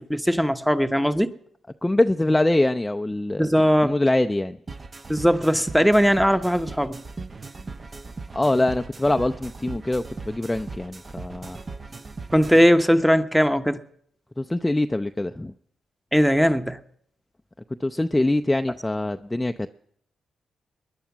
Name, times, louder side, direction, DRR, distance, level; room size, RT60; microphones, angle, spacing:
voice 1, 0.0-1.3 3.4-3.9 5.1-7.0 12.3-13.8 16.1-16.8, equal, ahead, 1.0 m, -19 dB
voice 2, 1.8-3.5 3.8-4.6 8.3-11.6 14.4-15.5 17.8-19.7, left 1 dB, 15° left, 0.5 m, -23 dB
sound 1, 4.7-12.7, right 3 dB, 40° right, 0.9 m, -38 dB
20.0 x 10.5 x 6.1 m
supercardioid pair, 55°, 0 cm